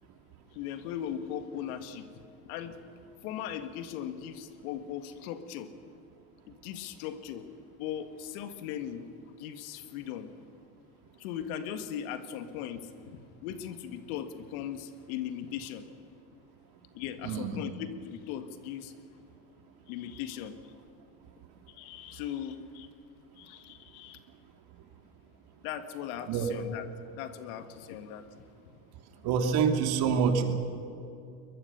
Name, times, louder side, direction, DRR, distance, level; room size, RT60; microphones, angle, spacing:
voice 1, 0.5-2.1 2.4-2.8 3.2-5.7 6.5-7.5 7.7-9.1 9.4-10.3 11.2-15.9 16.9-18.9 19.9-20.6 21.7-22.9 23.4-24.2 25.6-26.9 27.1-28.4, left 9 dB, 70° left, 10 dB, 1.9 m, -38 dB
voice 2, 17.2-17.6 26.3-26.5 29.2-30.5, right 6 dB, 55° right, 5 dB, 2.7 m, -26 dB
22.0 x 21.0 x 6.9 m, 2.6 s
hypercardioid pair, 95°, 45 cm